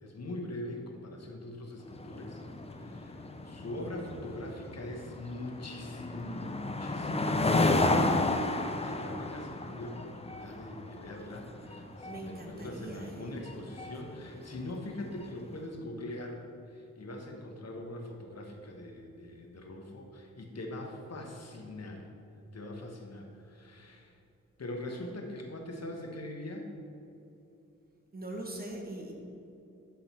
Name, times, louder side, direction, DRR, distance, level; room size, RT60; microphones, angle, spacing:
voice 1, 0.0-2.4 2.7-8.2 8.5-22.1 22.5-24.2 24.6-26.7, left 1 dB, 55° left, 2 dB, 1.3 m, -42 dB
sound 1, 1.9-15.4, left 2 dB, 20° left, 0.6 m, -33 dB
voice 2, 12.0-13.3 28.1-29.1, right 1 dB, 30° right, 0 dB, 1.5 m, -41 dB
11.5 x 3.8 x 4.4 m, 2.8 s
cardioid pair, 60°, 32 cm